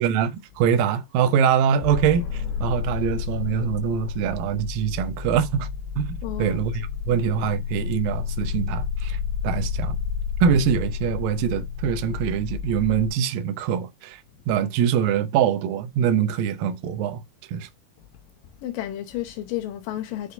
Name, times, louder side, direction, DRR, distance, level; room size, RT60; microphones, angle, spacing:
voice 1, 0.0-5.7 6.0-9.2 9.4-10.0 10.4-14.2 14.5-17.2 17.5-17.7, right 8 dB, 80° right, 2.1 m, -24 dB
sound 1, 1.8-13.1, left 7 dB, 55° left, 4.3 m, -30 dB
voice 2, 6.2-6.6 18.6-20.3, left 13 dB, 80° left, 2.0 m, -31 dB
10.0 x 4.9 x 2.6 m
omnidirectional pair, 5.1 m